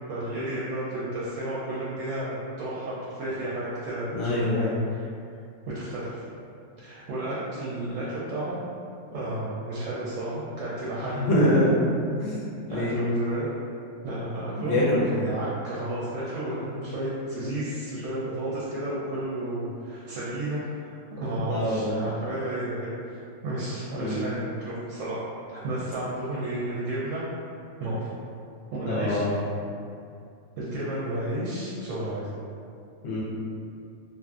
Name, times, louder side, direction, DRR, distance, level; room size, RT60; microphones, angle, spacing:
voice 1, 0.1-5.0 5.6-6.2 6.8-8.6 9.1-11.5 12.7-13.5 14.0-25.2 25.5-27.2 27.8-28.0 28.7-29.4 30.6-32.3, right 1 dB, 70° right, -8 dB, 0.9 m, -32 dB
voice 2, 4.1-4.8 11.0-11.8 12.2-12.9 14.6-14.8 21.4-22.0 23.9-24.2 28.8-29.3 33.0-33.2, left 1 dB, 65° left, -6 dB, 0.9 m, -25 dB
2.6 x 2.5 x 2.3 m, 2.5 s
omnidirectional pair, 1.5 m